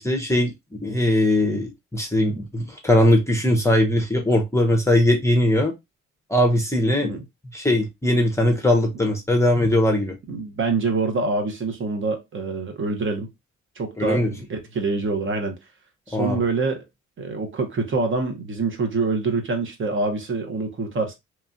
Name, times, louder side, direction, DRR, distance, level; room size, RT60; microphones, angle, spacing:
voice 1, 0.0-5.7 6.3-7.2 7.5-10.1 14.0-14.3 16.1-16.4, left 1 dB, 10° left, 0.7 m, -20 dB
voice 2, 10.3-13.3 13.8-15.6 16.1-16.8 17.2-21.1, right 3 dB, 40° right, 0.8 m, -25 dB
3.1 x 2.3 x 2.5 m
cardioid pair, 90°, 30 cm